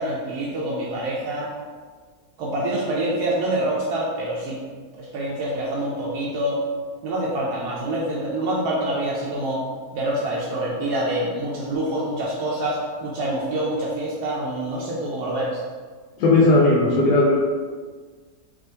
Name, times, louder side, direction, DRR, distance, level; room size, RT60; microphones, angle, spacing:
voice 1, 0.0-1.5 2.4-4.6 4.9-6.6 7.0-9.6 9.9-15.6, right 1 dB, 80° right, -4 dB, 1.1 m, -26 dB
voice 2, 16.2-17.4, left 2 dB, 80° left, -5 dB, 1.2 m, -16 dB
3.4 x 3.1 x 2.7 m, 1.5 s
omnidirectional pair, 1.7 m